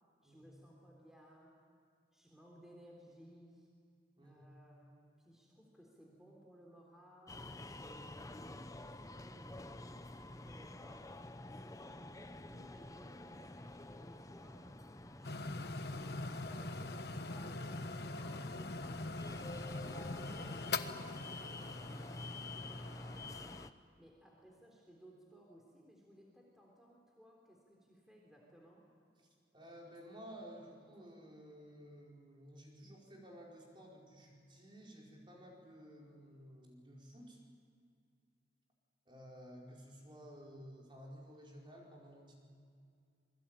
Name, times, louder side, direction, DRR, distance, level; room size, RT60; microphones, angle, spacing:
voice 1, 0.2-1.6 2.1-3.7 4.2-14.8 15.1-21.0 21.2-22.2 22.5-23.4 24.0-28.9, equal, 5° right, -1 dB, 3.5 m, -61 dB
sound 1, 7.3-23.7, left 2 dB, 20° left, 0.8 m, -49 dB
sound 2, 15.2-23.7, left 3 dB, 65° left, 1.1 m, -43 dB
voice 2, 29.5-37.4 39.0-42.3, equal, 30° right, -2 dB, 4.9 m, -54 dB
27.5 x 22.0 x 9.0 m, 2.3 s
head